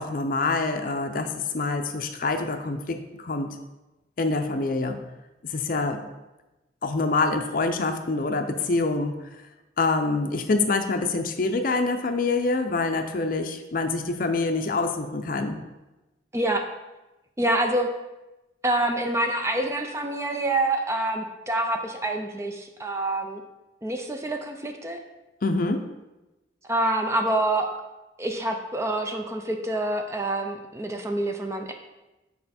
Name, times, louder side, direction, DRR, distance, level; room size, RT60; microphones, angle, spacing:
voice 1, 0.0-3.6 4.2-5.0 5.5-6.0 6.8-9.2 9.8-15.6 25.4-25.8, left 3 dB, 50° left, 6 dB, 0.5 m, -26 dB
voice 2, 16.3-16.6 17.4-17.9 18.6-23.4 23.8-25.0 26.7-27.7 28.2-31.7, right 1 dB, 15° right, 4 dB, 0.4 m, -26 dB
6.7 x 4.2 x 4.2 m, 1.0 s
head